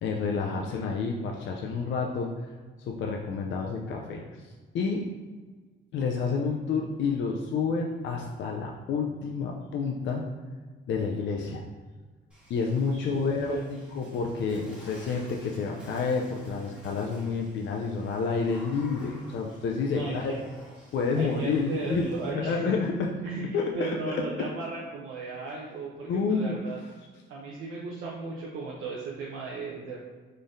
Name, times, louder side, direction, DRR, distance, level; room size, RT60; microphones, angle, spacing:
voice 1, 0.0-2.3 2.9-4.2 4.7-5.0 5.9-10.2 10.9-11.6 12.5-20.3 20.9-22.1 22.3-23.1 23.5-24.2 26.1-26.6, left 5 dB, 65° left, 1 dB, 0.4 m, -29 dB
Water / Splash splatter, 12.3-22.3, left 1 dB, 5° right, 1.3 m, -52 dB
voice 2, 12.9-13.6 19.9-20.4 21.2-22.7 23.2-26.8 27.3-30.0, right 4 dB, 85° right, -3 dB, 0.6 m, -36 dB
3.7 x 3.2 x 2.6 m, 1.4 s
cardioid pair, 90°, 20 cm